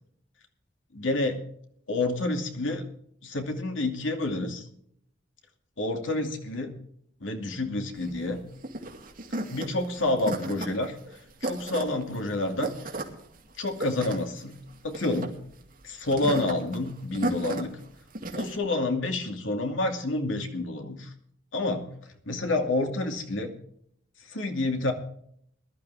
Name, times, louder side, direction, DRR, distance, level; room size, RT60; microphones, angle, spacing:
voice 1, 0.9-1.4 1.9-2.8 3.2-4.7 5.8-6.7 7.2-8.4 9.5-11.0 11.4-12.7 13.6-14.6 14.8-15.4 15.8-17.7 18.3-21.1 21.5-21.9 22.3-23.5 24.3-24.9, left 2 dB, 80° left, 4 dB, 2.5 m, -28 dB
sound 1, 8.0-18.6, right 2 dB, 45° right, 2.3 m, -35 dB
21.0 x 12.5 x 3.5 m, 0.67 s
head